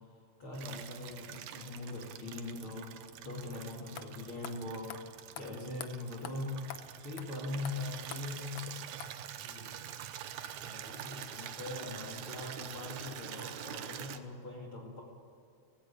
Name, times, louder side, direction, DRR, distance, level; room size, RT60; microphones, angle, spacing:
voice 1, 0.0-3.0 3.2-6.6 7.0-8.7 9.4-9.9 10.6-15.0, left 2 dB, 45° left, -2 dB, 3.0 m, -42 dB
Water tap faucet / Liquid, 0.5-14.2, right 10 dB, 75° right, 2.2 m, -46 dB
sound 1, 3.5-3.6 4.0-4.1 4.4-4.6 4.9-5.0 5.3-5.5 5.8-5.9 6.2-6.3 6.7-6.8 7.2-7.3 7.6-7.7 8.1-8.2 8.6-8.7 9.0-9.1, left 10 dB, 70° left, 1.3 m, -44 dB
18.0 x 17.0 x 8.7 m, 2.5 s
omnidirectional pair, 3.6 m